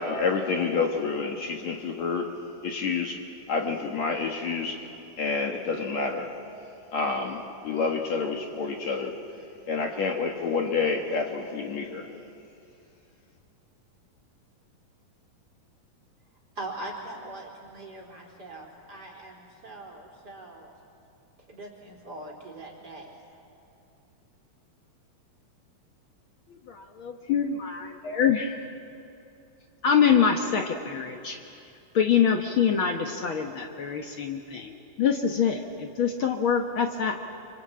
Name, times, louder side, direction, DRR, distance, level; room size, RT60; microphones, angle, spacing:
voice 1, 0.0-2.3 2.6-3.2 3.5-4.8 5.2-6.3 6.9-9.2 9.7-12.1, left 4 dB, 55° left, 3 dB, 2.4 m, -28 dB
voice 2, 16.6-20.7 21.5-23.4, right 2 dB, 25° right, -1 dB, 4.2 m, -41 dB
voice 3, 26.7-28.5 29.8-31.4 31.9-37.1, left 7 dB, 85° left, 4 dB, 1.1 m, -25 dB
27.0 x 25.5 x 8.7 m, 2.7 s
omnidirectional pair, 4.3 m